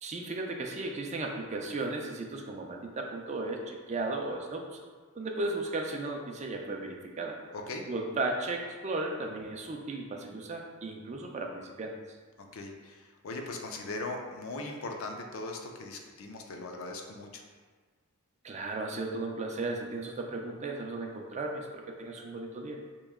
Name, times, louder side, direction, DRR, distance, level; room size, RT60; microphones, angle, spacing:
voice 1, 0.0-4.8 5.2-7.4 7.9-11.9 18.4-22.8, right 2 dB, 30° right, 1 dB, 0.4 m, -35 dB
voice 2, 7.5-7.8 12.4-17.4, left 2 dB, 60° left, 2 dB, 0.5 m, -39 dB
3.1 x 3.0 x 3.5 m, 1.4 s
head